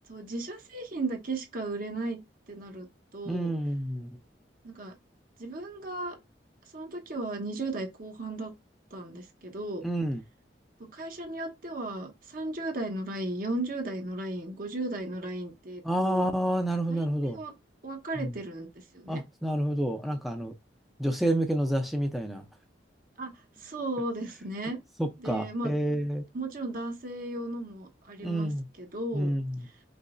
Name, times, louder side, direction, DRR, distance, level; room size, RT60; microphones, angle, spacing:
voice 1, 0.1-2.2 2.5-2.9 3.1-3.5 4.6-4.9 5.4-6.2 6.7-8.5 8.9-9.8 10.8-16.3 16.9-17.5 17.8-18.7 18.9-19.2 23.2-23.3 23.6-24.8 25.2-25.7 26.3-28.5 28.8-29.3, right 2 dB, 50° right, 1.0 m, -35 dB
voice 2, 3.3-4.1 9.8-10.2 15.8-17.4 18.2-18.3 19.1-20.5 21.0-22.4 25.0-26.2 28.2-28.7 29.1-29.7, right 1 dB, ahead, 0.5 m, -29 dB
5.3 x 3.9 x 2.5 m
head